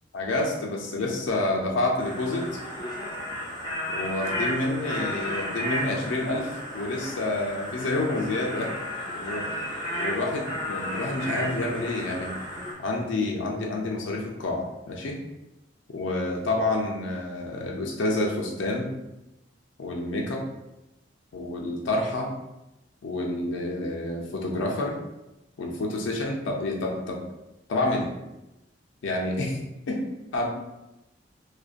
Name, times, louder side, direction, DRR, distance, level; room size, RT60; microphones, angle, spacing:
voice 1, 0.1-2.5 3.9-8.7 9.1-9.5 10.0-12.3 12.8-15.2 15.9-18.9 19.8-20.4 21.3-22.3 23.0-25.0 25.6-27.2 27.7-28.1 29.0-29.6 29.9-30.0 30.3-30.5, left 2 dB, 75° left, -1 dB, 0.4 m, -28 dB
sound 1, 2.0-12.7, equal, 20° left, 0.6 m, -33 dB
2.5 x 2.1 x 2.4 m, 0.94 s
head